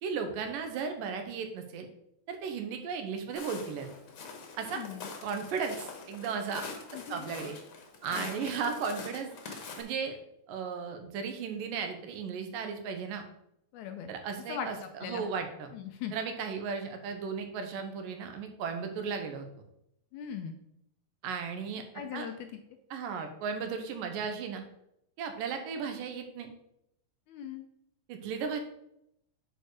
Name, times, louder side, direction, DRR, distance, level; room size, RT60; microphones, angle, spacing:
voice 1, 0.0-1.9 2.3-3.9 4.6-4.8 5.2-6.6 6.9-7.6 8.0-10.2 10.5-13.2 14.1-15.7 16.1-19.5 21.2-21.8 22.1-22.3 22.9-24.6 25.2-26.5 28.1-28.6, right 6 dB, 85° right, 6 dB, 2.6 m, -35 dB
Walk footsteps, 3.4-9.8, left 4 dB, 55° left, 1.7 m, -44 dB
voice 2, 4.7-5.1 6.9-7.3 8.1-8.5 13.7-14.1 14.5-15.3 15.7-16.1 20.1-20.6 21.9-22.5 27.3-27.7, left 8 dB, 75° left, 6 dB, 1.9 m, -40 dB
9.0 x 4.5 x 4.8 m, 0.78 s
omnidirectional pair, 3.9 m